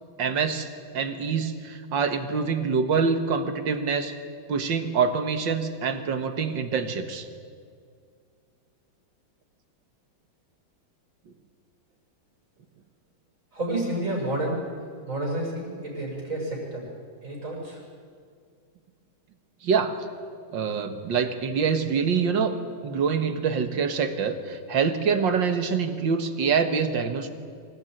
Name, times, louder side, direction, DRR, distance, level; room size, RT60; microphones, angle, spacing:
voice 1, 0.2-0.7 0.9-4.1 4.5-7.3 19.6-20.0 20.5-22.5 22.8-27.3, right 5 dB, 65° right, 8 dB, 2.2 m, -25 dB
voice 2, 13.5-14.6 15.1-16.8 17.2-17.8, right 1 dB, 35° right, -2 dB, 6.9 m, -30 dB
26.0 x 16.0 x 9.3 m, 2.2 s
omnidirectional pair, 2.2 m